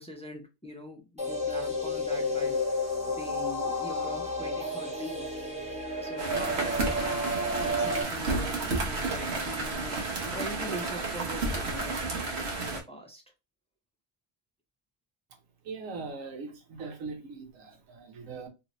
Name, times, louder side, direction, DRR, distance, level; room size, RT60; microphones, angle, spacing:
voice 1, 0.0-5.3 6.0-7.2 7.5-13.2, equal, 10° left, 0.3 m, -43 dB
sound 1, 1.2-8.0, left 1 dB, 5° right, 0.8 m, -31 dB
sound 2, 6.2-12.8, right 3 dB, 60° right, 1.1 m, -31 dB
voice 2, 15.7-18.5, right 4 dB, 80° right, 1.2 m, -40 dB
3.0 x 2.6 x 2.9 m
omnidirectional pair, 1.3 m